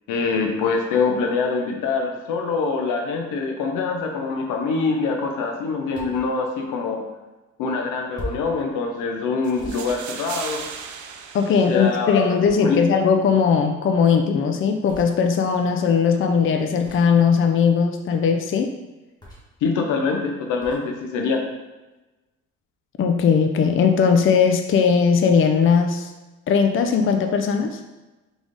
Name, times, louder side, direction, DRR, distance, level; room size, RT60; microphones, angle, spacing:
voice 1, 0.1-7.0 7.6-10.6 11.7-12.8 19.6-21.4, left 4 dB, 85° left, 3 dB, 0.7 m, -24 dB
sound 1, 5.9-6.3 8.1-8.6 9.6-10.8 12.4-13.0 14.9-15.1 16.8-17.2 19.2-19.6 20.6-20.8, left 1 dB, 15° left, 1.4 m, -39 dB
sound 2, 9.4-12.5, right 6 dB, 75° right, 0.5 m, -37 dB
voice 2, 11.3-18.7 23.0-26.1 26.5-27.8, left 6 dB, 45° left, 5 dB, 0.4 m, -19 dB
3.8 x 3.5 x 3.6 m, 1.1 s
cardioid pair, 90°, 30 cm